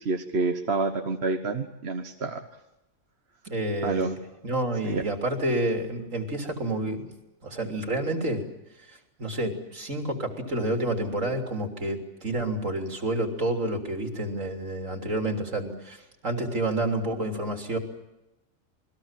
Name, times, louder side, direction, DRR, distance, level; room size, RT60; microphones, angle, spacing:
voice 1, 0.0-2.5 3.8-4.2 4.8-5.0, right 3 dB, 55° right, 5 dB, 1.5 m, -28 dB
voice 2, 3.5-4.2 4.4-7.1 7.4-8.4 8.9-17.8, right 1 dB, 70° right, 4 dB, 3.7 m, -29 dB
28.0 x 20.5 x 7.5 m, 0.90 s
omnidirectional pair, 1.4 m